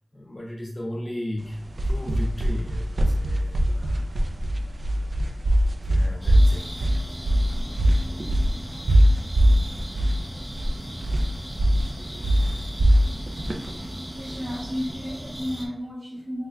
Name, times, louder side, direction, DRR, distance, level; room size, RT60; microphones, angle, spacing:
voice 1, 0.1-4.1 5.9-6.7, left 1 dB, 40° left, -2 dB, 0.5 m, -35 dB
sound 1, 1.4-14.7, equal, 80° right, 0.4 m, -22 dB
sound 2, 6.2-15.7, equal, 15° right, 0.6 m, -37 dB
voice 2, 13.7-16.5, equal, 55° right, -6 dB, 1.3 m, -33 dB
3.3 x 3.1 x 2.2 m, 0.86 s
wide cardioid pair, 65°, 0 cm